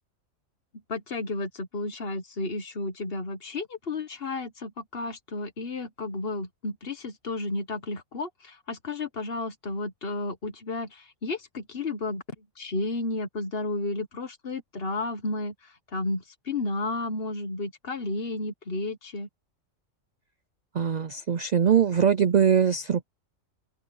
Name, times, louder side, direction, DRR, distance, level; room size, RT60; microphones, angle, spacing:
voice 1, 0.9-19.3, left 2 dB, 45° left, 1.5 m, -32 dB
voice 2, 20.7-23.0, right 8 dB, 60° right, 0.4 m, -22 dB
open air
omnidirectional pair, 1.4 m